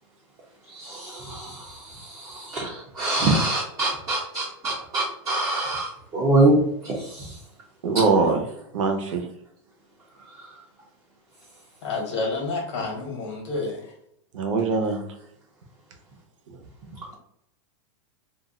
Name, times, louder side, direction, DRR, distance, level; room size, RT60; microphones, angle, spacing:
voice 1, 0.7-7.3, right 2 dB, 20° right, -5 dB, 0.6 m, -25 dB
voice 2, 7.8-8.4 8.7-9.3 14.3-15.0 16.5-16.6, right 4 dB, 85° right, 4 dB, 0.8 m, -23 dB
voice 3, 11.8-13.8, left 3 dB, 75° left, 0 dB, 1.2 m, -29 dB
2.6 x 2.1 x 3.7 m, 0.74 s
supercardioid pair, 160°, 16 cm